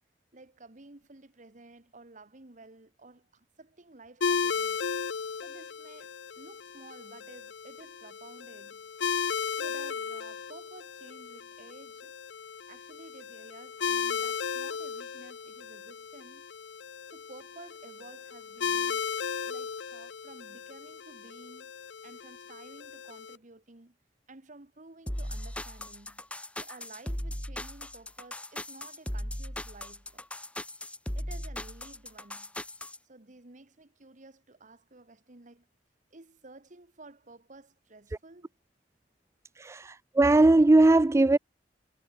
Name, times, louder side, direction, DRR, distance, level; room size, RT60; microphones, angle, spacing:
voice 1, 0.3-4.9 5.4-8.9 9.5-12.1 12.7-16.5 17.1-19.1 19.4-21.7 22.0-24.0 24.3-26.2 26.6-30.2 31.1-32.6 33.0-35.7 36.1-38.5, right 2 dB, 45° right, 1.5 m, -53 dB
sound 1, 4.2-23.4, left 6 dB, 90° left, 0.6 m, -35 dB
sound 2, 25.1-33.0, left 1 dB, 5° left, 1.1 m, -37 dB
voice 2, 39.6-41.4, right 2 dB, 15° right, 0.3 m, -20 dB
head